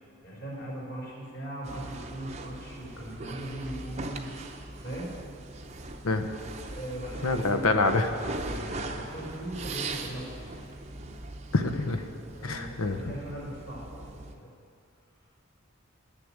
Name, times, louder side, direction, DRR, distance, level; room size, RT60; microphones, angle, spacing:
voice 1, 0.2-4.3 4.8-5.1 6.7-7.6 7.9-8.0 8.5-10.7 12.3-14.5, right 1 dB, 50° left, -4 dB, 4.1 m, -39 dB
sound 1, 1.6-14.3, right 2 dB, 30° right, 0.7 m, -40 dB
voice 2, 7.2-8.2 11.5-12.0 12.4-13.0, left 3 dB, 75° left, 7 dB, 0.9 m, -26 dB
10.5 x 9.9 x 8.6 m, 2.4 s
head